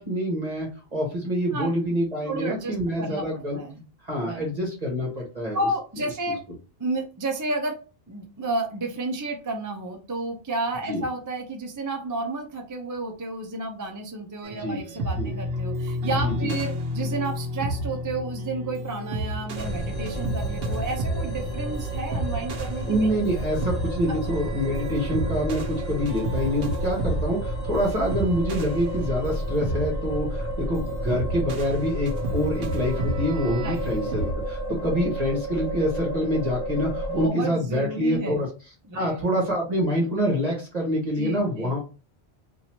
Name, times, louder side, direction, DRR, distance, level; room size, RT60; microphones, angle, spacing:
voice 1, 0.0-3.6 4.0-5.6 10.9-11.0 14.6-14.8 15.2-15.3 16.2-16.5 22.9-38.5 38.9-41.8, equal, 40° right, -3 dB, 1.3 m, -26 dB
voice 2, 2.2-3.8 4.3-4.4 5.5-6.4 6.8-7.8 8.1-23.1 24.1-24.2 33.6-33.8 37.1-38.5 38.9-39.2 41.2-41.7, right 2 dB, 25° right, 2 dB, 0.5 m, -31 dB
sound 1, 14.4-34.3, right 1 dB, 70° right, 0.9 m, -32 dB
sound 2, 19.5-37.3, right 1 dB, 40° left, 1.0 m, -31 dB
2.9 x 2.7 x 4.3 m, 0.34 s
omnidirectional pair, 1.1 m